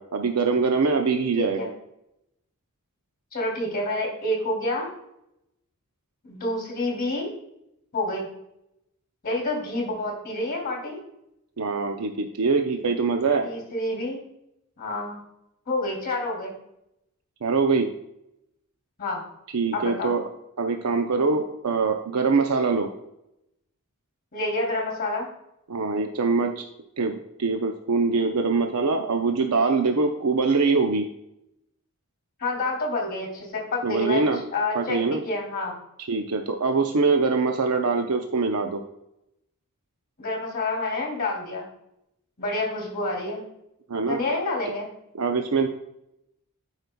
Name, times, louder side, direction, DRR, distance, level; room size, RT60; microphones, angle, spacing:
voice 1, 0.0-1.6 11.6-13.5 17.4-17.9 19.5-20.2 20.6-22.9 25.7-26.7 27.0-31.1 33.8-34.4 34.7-35.2 36.1-38.8 43.9-44.2 44.7-44.8 45.2-45.7, right 4 dB, 90° right, 4 dB, 0.6 m, -23 dB
voice 2, 1.4-1.7 3.3-4.9 6.2-7.3 7.9-8.3 9.2-11.0 13.4-14.2 14.8-15.2 15.7-16.5 19.0-19.2 19.7-20.1 24.3-25.3 32.4-34.3 34.5-35.8 40.2-41.7 42.4-43.4 44.0-44.9, left 2 dB, 40° left, -1 dB, 2.9 m, -28 dB
11.5 x 5.5 x 2.3 m, 0.82 s
head